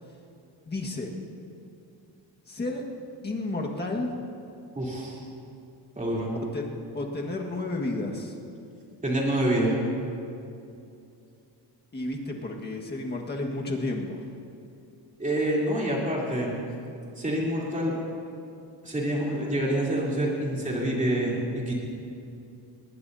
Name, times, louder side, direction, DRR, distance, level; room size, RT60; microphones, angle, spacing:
voice 1, 0.7-1.1 2.5-2.8 3.2-4.2 6.5-6.7 6.9-8.3 11.9-14.3, left 2 dB, 25° left, 0 dB, 1.7 m, -31 dB
voice 2, 4.7-5.2 5.9-6.3 9.0-9.8 15.2-16.5 17.2-17.9 18.8-21.7, right 1 dB, 20° right, -4 dB, 3.4 m, -27 dB
20.5 x 19.0 x 2.8 m, 2.6 s
cardioid pair, 145°, 43 cm